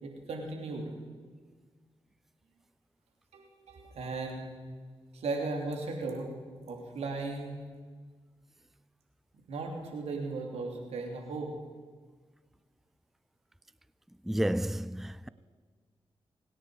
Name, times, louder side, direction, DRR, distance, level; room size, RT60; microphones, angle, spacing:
voice 1, 0.0-0.9 3.3-4.5 5.1-6.3 6.7-7.6 9.5-11.5, right 3 dB, 85° right, 3.0 m, -36 dB
voice 2, 14.3-15.3, right 1 dB, 5° right, 0.4 m, -31 dB
27.0 x 9.9 x 5.1 m
supercardioid pair, 45°, 11 cm